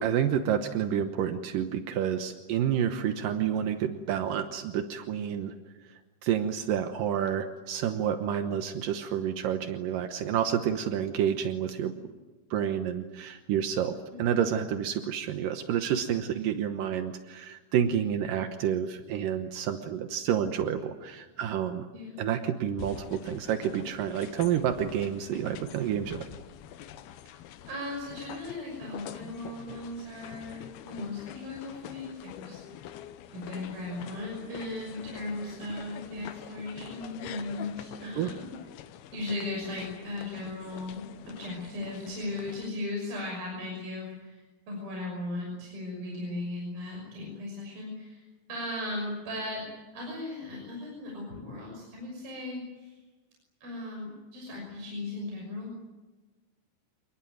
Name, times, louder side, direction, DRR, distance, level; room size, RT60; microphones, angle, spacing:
voice 1, 0.0-5.6 6.2-11.9 12.5-21.8 22.2-26.3 38.2-38.3, right 9 dB, 75° right, 7 dB, 2.0 m, -29 dB
sound 1, 22.8-42.7, left 11 dB, 75° left, 2.5 m, -46 dB
voice 2, 27.7-32.6 33.3-38.5 39.1-48.2 48.5-49.7 49.9-53.0 53.6-55.8, left 2 dB, 50° right, -1 dB, 7.9 m, -37 dB
28.5 x 20.0 x 9.4 m, 1.2 s
omnidirectional pair, 5.5 m